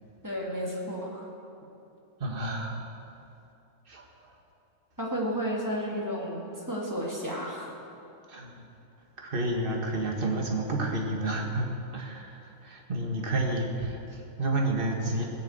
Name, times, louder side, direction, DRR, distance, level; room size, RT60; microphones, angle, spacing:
voice 1, 0.2-1.3 5.0-7.7, equal, 10° right, -3 dB, 2.1 m, -32 dB
voice 2, 2.2-2.8 3.9-4.3 8.3-8.6 9.2-11.7 11.9-15.2, right 2 dB, 35° right, 1 dB, 1.8 m, -30 dB
18.0 x 7.1 x 7.9 m, 2.7 s
omnidirectional pair, 1.6 m